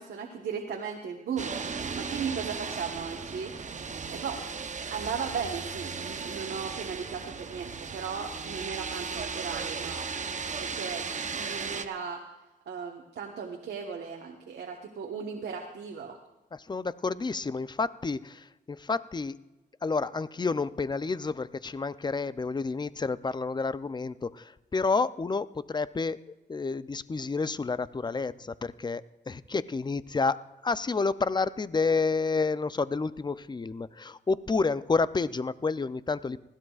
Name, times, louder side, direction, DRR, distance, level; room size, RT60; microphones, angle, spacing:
voice 1, 0.0-3.5 4.1-4.4 4.9-10.0 10.6-11.1 11.3-12.2 12.7-16.2, right 6 dB, 90° right, 1 dB, 1.3 m, -36 dB
sound 1, 1.4-11.9, right 5 dB, 45° right, 0.9 m, -36 dB
voice 2, 16.5-19.4 19.8-30.4 30.6-36.4, left 4 dB, 25° left, 15 dB, 0.5 m, -30 dB
20.0 x 16.0 x 2.4 m, 1.0 s
cardioid pair, 80°, 17 cm